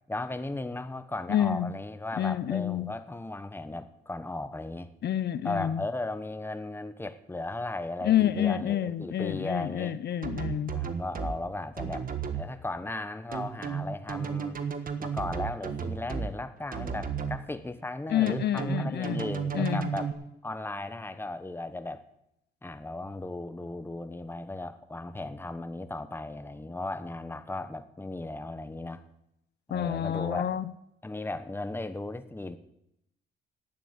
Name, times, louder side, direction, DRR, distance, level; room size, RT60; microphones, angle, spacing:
voice 1, 0.1-4.9 5.4-10.0 10.7-12.1 12.3-14.6 15.0-20.1 20.4-22.1 22.6-29.0 29.7-30.5 31.0-32.6, left 2 dB, 10° left, 10 dB, 1.1 m, -36 dB
voice 2, 1.3-1.7 2.2-2.9 5.0-5.8 8.0-10.7 18.1-19.3 19.5-19.9 29.7-30.6, left 10 dB, 60° left, 15 dB, 0.7 m, -28 dB
sound 1, 10.2-11.4 11.8-12.4 13.3-16.3 16.7-17.4 18.3-20.1, right 6 dB, 45° right, 1.5 m, -33 dB
11.5 x 9.1 x 8.8 m, 0.82 s
cardioid pair, 90°, 20 cm